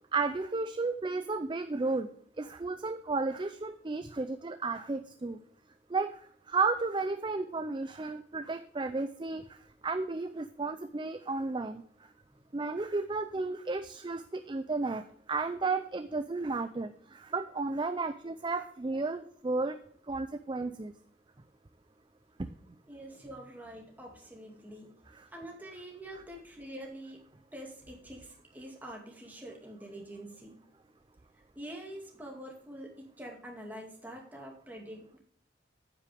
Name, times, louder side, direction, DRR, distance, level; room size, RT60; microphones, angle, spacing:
voice 1, 0.1-2.1 2.4-5.4 5.9-6.2 6.5-9.6 9.8-11.8 12.5-19.8 20.1-20.9 22.4-22.5 25.1-25.3, right 3 dB, 25° right, 10 dB, 0.4 m, -33 dB
voice 2, 22.9-24.9 25.3-27.2 27.5-30.6 31.6-35.2, right 1 dB, 10° right, -1 dB, 2.3 m, -45 dB
9.5 x 8.6 x 3.5 m, 0.62 s
head